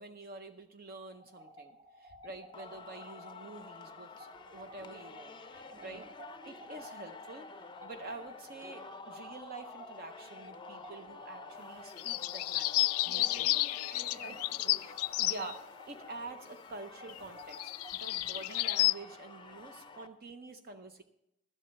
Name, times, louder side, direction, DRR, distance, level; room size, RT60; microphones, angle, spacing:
voice 1, 0.0-6.1 6.4-13.7 14.3-14.4 15.2-15.6 15.9-17.7 18.0-21.0, right 3 dB, 45° right, 7 dB, 0.6 m, -47 dB
sound 1, 1.1-20.4, equal, 25° right, 1.8 m, -54 dB
Singing, 2.5-20.1, left 4 dB, 20° left, 0.5 m, -50 dB
voice 2, 5.7-6.1 13.1-15.0 15.3-15.6, right 1 dB, 80° right, 0 dB, 5.7 m, -51 dB
sound 2, 12.0-15.5 17.1-17.2 17.5-18.9, left 18 dB, 80° left, 0.3 m, -31 dB
12.5 x 8.2 x 5.6 m, 0.84 s
head